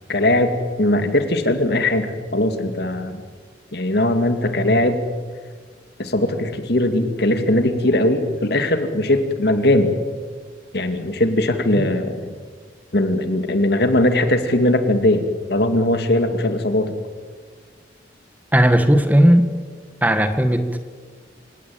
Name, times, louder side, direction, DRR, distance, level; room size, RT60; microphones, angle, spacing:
voice 1, 0.1-3.2 3.7-5.0 6.0-9.9 10.7-12.3 12.9-16.9, left 1 dB, 60° left, 7 dB, 2.5 m, -19 dB
voice 2, 18.5-19.4 20.0-20.8, equal, 10° right, 8 dB, 1.6 m, -15 dB
27.5 x 18.0 x 8.9 m, 1.5 s
head